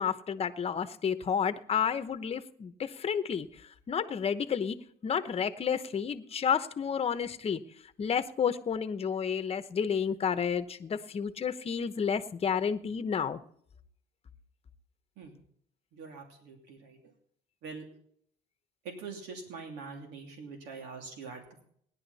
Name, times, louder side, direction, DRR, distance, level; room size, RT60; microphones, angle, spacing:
voice 1, 0.0-4.8 5.0-7.6 8.0-13.4, left 7 dB, 35° left, 10 dB, 1.0 m, -31 dB
voice 2, 15.9-17.0 17.6-17.8 18.8-21.6, right 4 dB, 90° right, 2 dB, 2.9 m, -44 dB
17.5 x 11.0 x 4.1 m, 0.64 s
cardioid pair, 110°, 17 cm